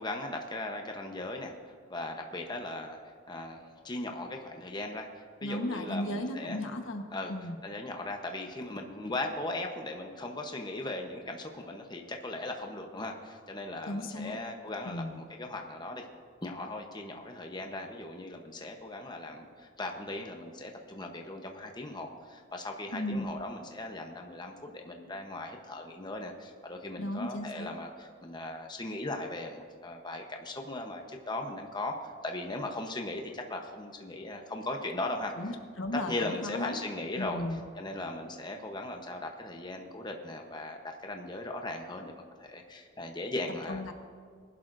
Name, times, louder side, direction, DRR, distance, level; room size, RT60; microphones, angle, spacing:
voice 1, 0.0-6.6 7.1-7.3 7.6-16.1 16.4-35.3 35.9-37.4 37.8-43.8, left 2 dB, 20° left, 3 dB, 0.9 m, -38 dB
voice 2, 5.4-7.0 7.3-7.6 13.9-14.4 14.8-15.2 22.9-23.3 27.0-27.7 35.4-36.8 37.2-37.6 43.7-43.9, left 1 dB, 85° left, 5 dB, 1.2 m, -35 dB
20.5 x 11.5 x 2.6 m, 2.1 s
head